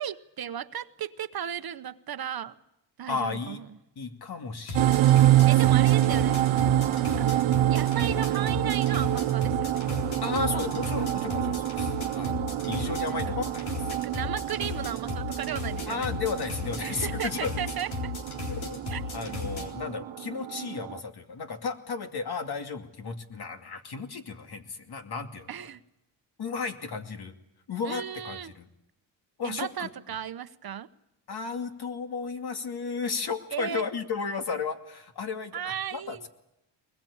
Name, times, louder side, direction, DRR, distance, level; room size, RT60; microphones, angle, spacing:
voice 1, 0.0-2.5 3.0-3.6 5.5-6.4 7.2-7.4 7.7-9.8 13.0-13.3 14.0-16.1 16.8-18.1 18.9-19.0 25.5-25.8 27.8-28.5 29.4-30.9 33.5-33.8 35.5-36.3, right 9 dB, 50° right, 1.0 m, -35 dB
voice 2, 3.1-3.6 4.0-5.4 10.2-13.7 15.9-17.6 18.5-18.8 19.1-25.5 26.4-27.3 27.7-28.7 29.4-29.9 31.3-36.3, left 5 dB, 55° left, 2.6 m, -34 dB
sound 1, 4.6-19.7, left 5 dB, 85° left, 4.0 m, -36 dB
sound 2, 4.7-21.0, right 14 dB, 90° right, 0.8 m, -26 dB
23.0 x 21.0 x 8.7 m
cardioid pair, 80°, 46 cm